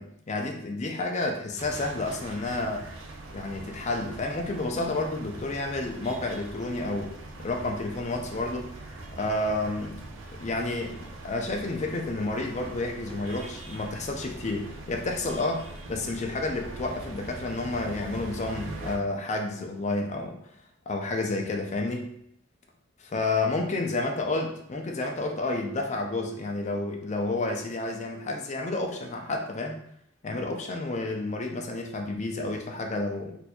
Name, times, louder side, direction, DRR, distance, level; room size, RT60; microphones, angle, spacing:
voice 1, 0.0-2.9 3.3-8.7 9.2-9.9 10.3-15.6 15.9-20.4 20.9-22.1 23.0-29.8 30.2-33.4, left 2 dB, 35° left, 3 dB, 0.5 m, -30 dB
sound 1, 1.6-19.0, right 2 dB, 75° right, 0.5 m, -42 dB
4.2 x 2.6 x 2.3 m, 0.73 s
head